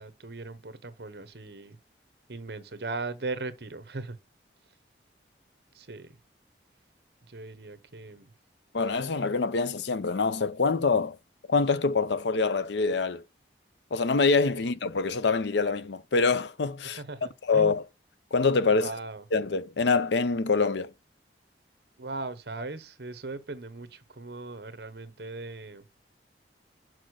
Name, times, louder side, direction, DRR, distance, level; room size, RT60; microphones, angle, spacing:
voice 1, 0.0-1.8 2.3-4.2 5.7-6.2 7.2-8.3 14.5-14.6 17.0-17.8 18.7-19.2 22.0-25.8, right 3 dB, 60° right, 1.0 m, -38 dB
voice 2, 8.7-11.2 11.5-13.2 13.9-17.0 17.5-17.8 18.3-18.9 19.3-20.9, left 4 dB, 75° left, 0.6 m, -25 dB
6.5 x 4.4 x 6.4 m
head